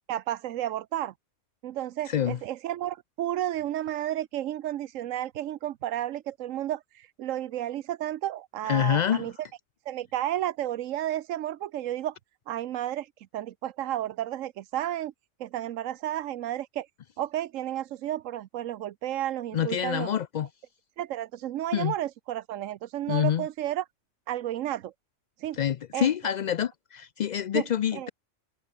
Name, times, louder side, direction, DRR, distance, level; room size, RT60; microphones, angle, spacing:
voice 1, 0.1-1.1 1.6-9.3 9.9-12.2 12.5-15.1 15.4-16.9 17.2-20.1 21.0-23.8 24.3-24.9 25.4-25.6 25.9-26.1 27.5-27.6 27.9-28.1, right 12 dB, 85° right, 1.1 m, -32 dB
voice 2, 2.1-2.4 8.6-9.3 19.5-20.5 21.7-21.9 23.1-23.5 25.5-28.1, left 9 dB, 85° left, 0.3 m, -26 dB
omnidirectional pair, 1.3 m